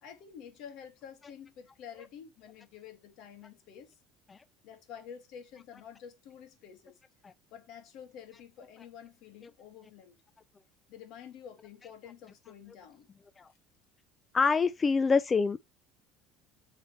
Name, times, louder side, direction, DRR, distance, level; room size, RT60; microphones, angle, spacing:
voice 1, 0.0-4.0 4.6-6.9 7.5-10.2 10.9-13.1, left 8 dB, 65° left, 2.1 m, -49 dB
voice 2, 14.3-15.6, left 5 dB, 25° left, 0.3 m, -26 dB
7.3 x 4.1 x 3.2 m
cardioid pair, 125°, 0 cm